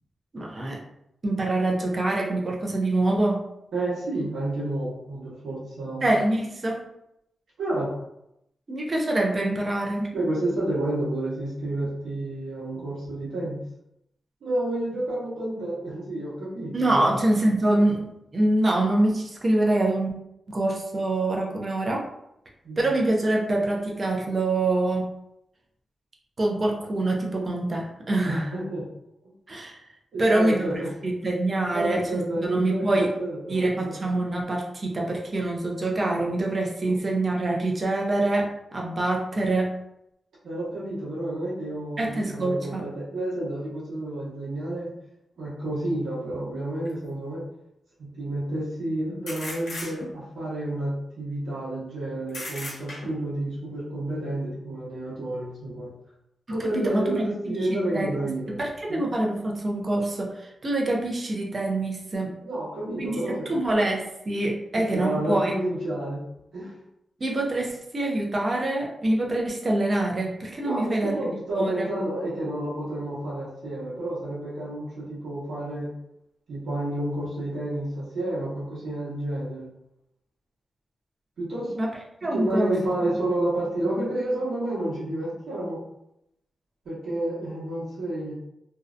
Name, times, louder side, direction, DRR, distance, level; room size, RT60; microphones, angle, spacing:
voice 1, 0.3-0.8 1.2-3.4 6.0-6.8 8.7-10.1 16.7-18.1 18.3-20.1 20.5-22.1 22.8-25.1 26.4-28.5 29.5-29.8 30.2-33.2 33.5-39.7 42.0-42.9 56.7-57.1 57.9-58.1 58.5-62.3 63.0-63.1 63.5-65.5 67.2-71.2 71.5-71.9 81.8-81.9 82.2-82.7, right 2 dB, 30° right, -1 dB, 0.4 m, -25 dB
voice 2, 3.7-6.1 7.6-7.9 10.1-13.6 14.4-17.2 22.6-22.8 28.2-28.8 30.1-30.9 31.7-33.6 40.4-44.9 45.4-47.4 48.0-55.9 56.5-58.6 58.9-59.0 62.4-63.5 64.7-66.2 66.5-66.7 70.6-75.9 76.5-79.7 81.4-81.7 82.2-85.8 86.8-88.3, right 1 dB, 75° right, -9 dB, 1.0 m, -30 dB
sound 1, 46.9-47.0 49.3-50.4 52.3-53.3, left 1 dB, 65° left, 0.7 m, -36 dB
2.6 x 2.1 x 2.4 m, 0.81 s
wide cardioid pair, 175°, 0 cm